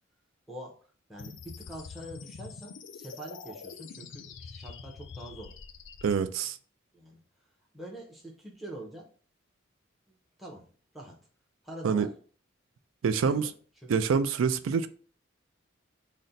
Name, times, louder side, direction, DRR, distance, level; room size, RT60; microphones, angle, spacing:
voice 1, 0.5-0.8 1.1-5.6 6.9-7.2 7.7-9.1 10.1-10.7 10.9-11.2 11.6-12.1 13.2-13.5 13.8-14.1, right 1 dB, ahead, 0.7 m, -45 dB
sound 1, 1.2-6.1, left 5 dB, 70° left, 0.4 m, -45 dB
voice 2, 6.0-6.6 11.8-12.1 13.0-13.5 13.9-14.9, right 6 dB, 85° right, 0.4 m, -26 dB
4.0 x 2.1 x 3.8 m
head